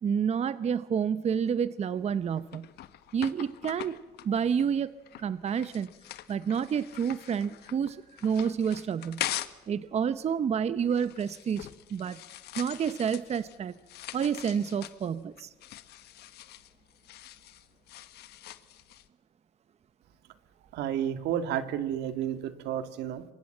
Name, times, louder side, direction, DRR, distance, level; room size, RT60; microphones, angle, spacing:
voice 1, 0.0-2.7 3.1-5.9 6.3-9.3 9.7-12.2 12.6-13.7 14.1-15.5, right 7 dB, 40° right, 14 dB, 0.8 m, -29 dB
sound 1, 1.9-9.7 10.0-19.1, left 13 dB, 75° left, 1.4 m, -43 dB
voice 2, 20.7-23.2, right 10 dB, 85° right, 10 dB, 2.0 m, -31 dB
27.0 x 23.5 x 7.8 m, 1.1 s
cardioid pair, 110°, 17 cm